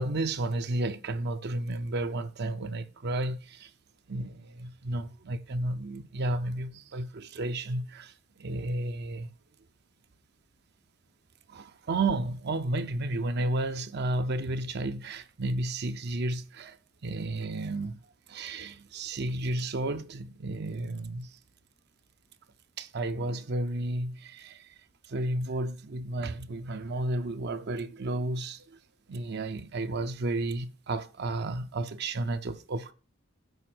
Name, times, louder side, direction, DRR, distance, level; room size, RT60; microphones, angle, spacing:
voice 1, 0.0-3.7 4.1-9.3 11.5-16.8 17.0-18.0 18.3-21.3 22.8-24.7 25.0-28.8 29.1-32.9, right 2 dB, 55° right, 0.6 m, -32 dB
8.0 x 5.1 x 6.0 m
head